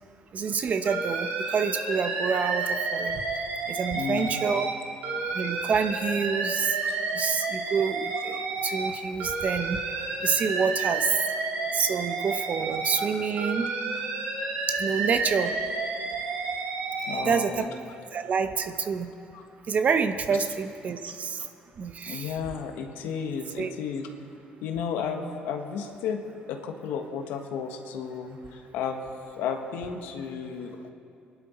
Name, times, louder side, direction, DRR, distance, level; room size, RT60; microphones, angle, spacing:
voice 1, 0.3-3.2 3.7-4.7 5.3-6.8 7.1-9.8 10.2-11.2 11.7-13.7 14.7-15.5 17.1-17.7 18.1-19.1 19.7-21.4 21.8-22.4 23.6-23.7, right 6 dB, 50° right, 8 dB, 1.0 m, -27 dB
Alarm, 0.9-4.7 5.0-8.9 9.2-13.1 13.4-17.2, right 3 dB, 80° right, 2.3 m, -30 dB
voice 2, 3.9-4.5 6.8-7.0 13.0-13.2 17.1-17.7 19.3-19.4 22.1-24.1 24.6-26.2 26.5-30.9, left 6 dB, 80° left, 4 dB, 1.5 m, -33 dB
25.5 x 11.0 x 4.4 m, 2.6 s
supercardioid pair, 80°, 3 cm